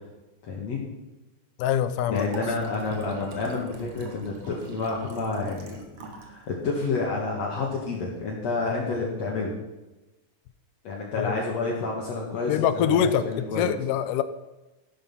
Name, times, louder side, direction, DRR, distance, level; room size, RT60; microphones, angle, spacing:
voice 1, 0.4-0.8 2.1-5.8 6.0-9.5 10.8-13.7, left 3 dB, 55° left, -3 dB, 3.0 m, -29 dB
voice 2, 1.6-2.3 11.2-11.3 12.5-14.2, left 9 dB, 80° left, 12 dB, 2.3 m, -24 dB
Liquid, 2.1-6.4 6.7-6.8, right 3 dB, 55° right, 2.9 m, -43 dB
15.5 x 12.0 x 5.6 m, 1.1 s
omnidirectional pair, 3.7 m